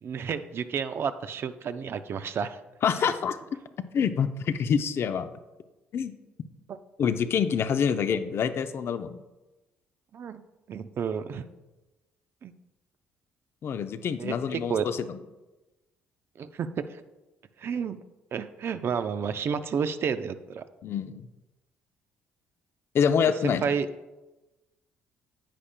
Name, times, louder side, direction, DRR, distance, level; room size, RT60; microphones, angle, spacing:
voice 1, 0.0-2.6 3.0-3.1 6.7-6.8 10.1-10.4 10.7-11.5 12.4-12.5 14.2-14.9 16.4-17.0 17.6-18.0 18.3-20.6 23.4-23.9, right 6 dB, 55° right, 11 dB, 0.5 m, -31 dB
voice 2, 2.8-3.4 3.9-5.3 5.9-6.1 7.0-9.2 13.6-15.2 20.8-21.3 22.9-23.7, left 7 dB, 55° left, 10 dB, 0.6 m, -26 dB
10.0 x 8.4 x 2.2 m, 1.1 s
hypercardioid pair, 60°, 5 cm